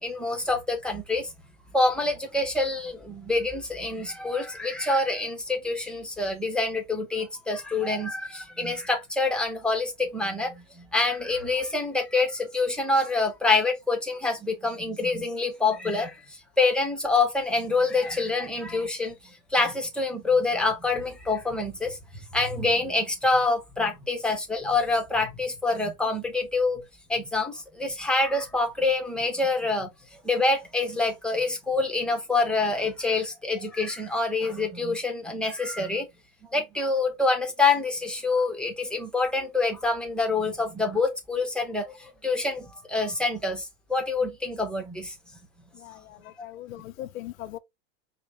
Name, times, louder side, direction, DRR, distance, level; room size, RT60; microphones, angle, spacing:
voice 1, 0.0-1.3 1.7-22.0 22.3-26.8 27.1-29.9 30.2-36.1 36.5-45.1, left 3 dB, ahead, 0.9 m, -26 dB
voice 2, 45.8-47.6, left 13 dB, 80° left, 0.6 m, -40 dB
5.0 x 2.3 x 3.2 m
supercardioid pair, 130°, 40 cm